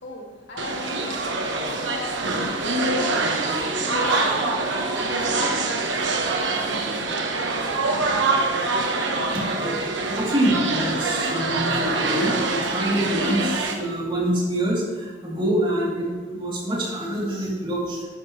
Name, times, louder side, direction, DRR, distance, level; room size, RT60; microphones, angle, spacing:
voice 1, 0.0-3.3 3.7-5.9 6.9-7.3, left 2 dB, 70° left, -3 dB, 2.4 m, -39 dB
sound 1, 0.6-13.7, right 3 dB, 85° right, 1.3 m, -25 dB
voice 2, 9.3-9.8 10.1-18.0, right 1 dB, 30° right, -5 dB, 3.5 m, -25 dB
11.5 x 11.5 x 3.4 m, 1.3 s
head